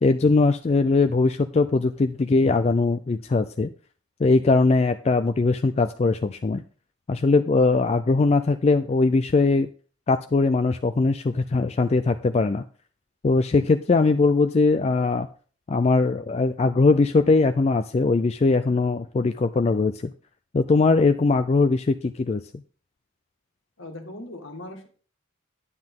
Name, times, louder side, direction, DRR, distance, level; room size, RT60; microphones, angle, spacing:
voice 1, 0.0-3.7 4.2-6.6 7.1-9.7 10.1-12.6 13.2-15.3 15.7-20.1 20.5-22.4, left 3 dB, 30° left, 9 dB, 0.3 m, -21 dB
voice 2, 23.8-24.9, left 1 dB, 60° left, 5 dB, 1.6 m, -39 dB
9.7 x 9.5 x 3.6 m, 0.41 s
head